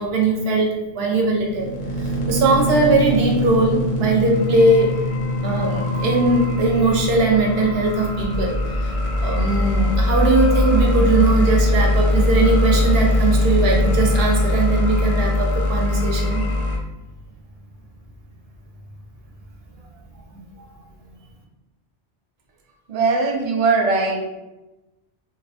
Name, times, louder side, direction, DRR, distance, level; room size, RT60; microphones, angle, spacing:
voice 1, 0.0-1.7 2.0-5.0 5.4-8.9 9.2-16.5 20.3-20.4, right 2 dB, 70° right, 0 dB, 0.8 m, -20 dB
sound 1, 1.3-16.8, left 1 dB, 45° left, 0.4 m, -21 dB
voice 2, 22.9-24.2, right 4 dB, 55° right, -1 dB, 0.4 m, -20 dB
2.6 x 2.0 x 2.7 m, 1.0 s
omnidirectional pair, 1.1 m